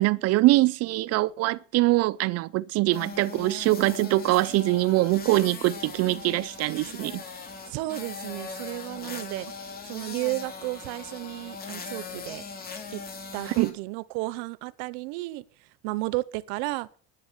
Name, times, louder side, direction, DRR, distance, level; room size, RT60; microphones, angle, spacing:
voice 1, 0.0-7.2 13.5-13.7, right 18 dB, 55° right, 0.5 m, -23 dB
sound 1, 2.9-13.7, left 5 dB, 30° left, 2.9 m, -40 dB
voice 2, 7.7-9.5 9.9-12.5 12.9-13.0 13.3-15.4 15.8-16.9, right 21 dB, 90° right, 0.8 m, -33 dB
10.5 x 10.5 x 7.2 m
cardioid pair, 135°, 29 cm